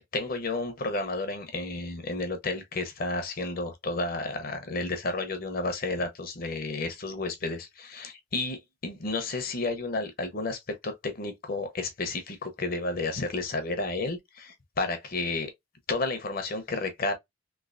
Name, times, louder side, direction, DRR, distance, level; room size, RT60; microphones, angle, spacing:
voice 1, 0.0-15.5 15.9-17.1, left 3 dB, 45° left, 0.7 m, -32 dB
3.1 x 3.0 x 2.5 m
head